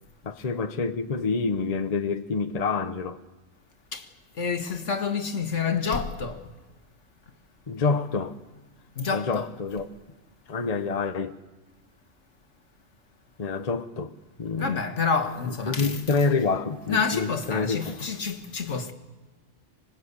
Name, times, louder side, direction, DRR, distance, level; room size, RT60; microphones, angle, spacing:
voice 1, 0.2-3.2 7.7-8.4 9.1-9.9 10.5-11.3 13.4-14.8 15.7-18.1, left 4 dB, 35° left, 0.9 m, -27 dB
voice 2, 4.4-6.4 9.0-9.4 14.6-16.0 16.9-18.9, left 5 dB, 70° left, 1.9 m, -28 dB
26.5 x 19.5 x 8.3 m
omnidirectional pair, 1.3 m